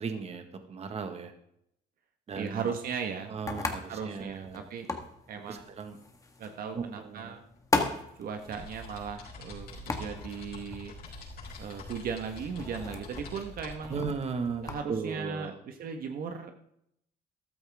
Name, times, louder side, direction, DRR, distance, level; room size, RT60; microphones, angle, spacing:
voice 1, 0.0-1.3 2.3-2.7 3.3-4.6 5.5-6.0 6.7-7.3 13.9-15.6, right 5 dB, 40° right, 7 dB, 1.7 m, -36 dB
sound 1, 2.3-14.8, left 3 dB, 20° left, 1.7 m, -38 dB
voice 2, 2.3-3.3 3.9-4.9 5.3-5.7 6.4-7.4 8.2-10.9 11.6-14.0 14.6-16.5, right 6 dB, 60° right, 5 dB, 1.4 m, -37 dB
sound 2, 7.1-7.2 7.5-13.7, left 2 dB, 60° left, 5.1 m, -46 dB
14.0 x 12.5 x 3.6 m, 0.74 s
cardioid pair, 110°, 17 cm